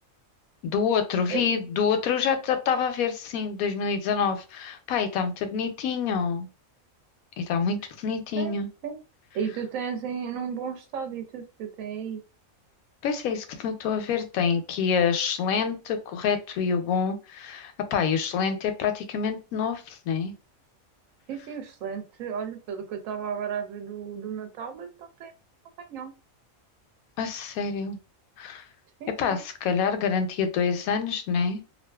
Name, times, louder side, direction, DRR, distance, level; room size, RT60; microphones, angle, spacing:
voice 1, 0.6-6.5 7.4-8.7 13.0-20.3 27.2-28.0 28.4-28.7 29.2-31.6, left 6 dB, 85° left, 8 dB, 1.0 m, -27 dB
voice 2, 8.4-9.0 9.3-12.2 21.3-25.3 25.8-26.1 29.0-29.4, right 7 dB, 75° right, 5 dB, 1.0 m, -34 dB
2.5 x 2.4 x 2.2 m, 0.31 s
omnidirectional pair, 1.4 m